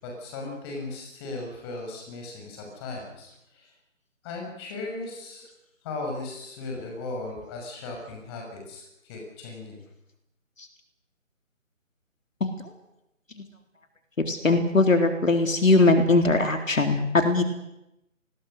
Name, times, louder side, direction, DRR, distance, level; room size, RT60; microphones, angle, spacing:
voice 1, 0.0-3.7 4.2-5.5 5.8-9.8, left 2 dB, 20° left, 1 dB, 6.0 m, -37 dB
voice 2, 14.3-17.4, left 2 dB, 70° left, 5 dB, 3.8 m, -20 dB
29.0 x 20.5 x 6.6 m, 0.86 s
figure-of-eight pair, 155°, 40 cm